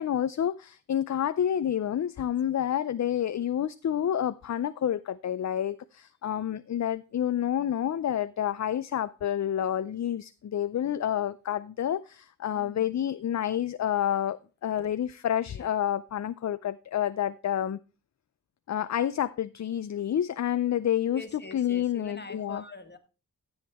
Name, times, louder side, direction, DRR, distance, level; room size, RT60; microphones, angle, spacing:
voice 1, 0.0-17.8 18.7-21.2 21.5-22.6, left 10 dB, 50° left, 0.5 m, -29 dB
voice 2, 12.5-13.0 14.8-14.9 15.5-15.7 21.1-23.0, left 3 dB, 30° left, 1.5 m, -44 dB
13.0 x 8.0 x 3.5 m
wide cardioid pair, 90°, 36 cm